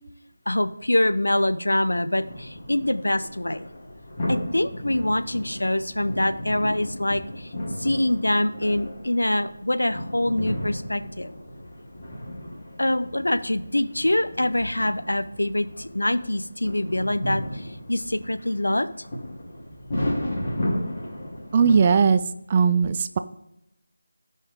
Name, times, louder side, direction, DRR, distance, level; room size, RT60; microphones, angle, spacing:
voice 1, 0.5-3.7 4.3-7.5 7.8-11.3 12.8-19.0, left 1 dB, 75° left, 11 dB, 0.8 m, -25 dB
sound 1, 2.2-22.1, left 1 dB, 30° left, 3.2 m, -34 dB
voice 2, 21.5-22.2 22.5-23.2, right 6 dB, 25° right, 11 dB, 0.4 m, -18 dB
16.0 x 5.5 x 3.7 m, 0.83 s
figure-of-eight pair, 160°, 0 cm